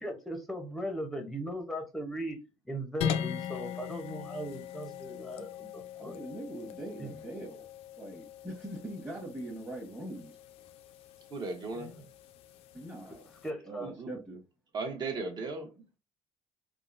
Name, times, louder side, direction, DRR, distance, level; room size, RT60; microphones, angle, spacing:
voice 1, 0.0-2.4 2.7-6.2 7.0-7.1 11.7-12.0 13.4-13.9, equal, ahead, 0.6 m, -38 dB
sound 1, 3.0-13.5, left 9 dB, 70° left, 0.4 m, -41 dB
voice 2, 5.9-7.6 8.0-10.4 12.7-13.3 13.6-14.4, right 1 dB, 20° right, 1.1 m, -42 dB
voice 3, 11.3-11.9 13.8-14.1 14.7-16.0, right 3 dB, 45° right, 0.8 m, -37 dB
3.5 x 2.0 x 2.4 m
cardioid pair, 115°, 10 cm